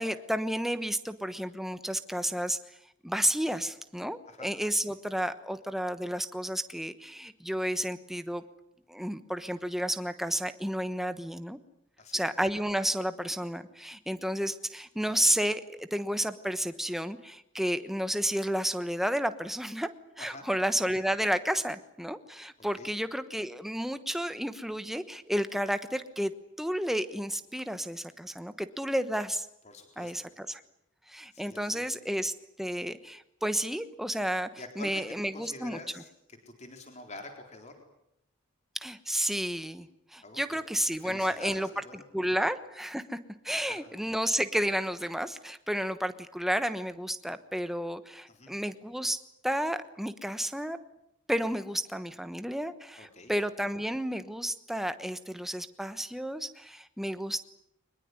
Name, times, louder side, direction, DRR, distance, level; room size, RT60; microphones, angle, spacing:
voice 1, 0.0-2.6 3.0-8.4 8.9-11.6 12.1-19.9 20.2-26.3 26.6-29.5 30.0-30.6 31.1-32.3 32.6-34.5 34.8-36.0 38.7-41.7 42.1-43.2 43.4-49.2 49.4-50.8 51.3-57.4, equal, ahead, 11 dB, 1.1 m, -31 dB
voice 2, 12.0-12.3 20.2-20.5 22.6-22.9 29.6-30.1 31.3-31.8 34.6-35.1 35.3-36.1 36.5-37.7 40.2-40.6 41.0-42.0 43.7-43.9 48.3-48.5 53.0-53.3, left 2 dB, 30° left, 4 dB, 4.0 m, -46 dB
23.5 x 21.0 x 9.7 m, 0.76 s
head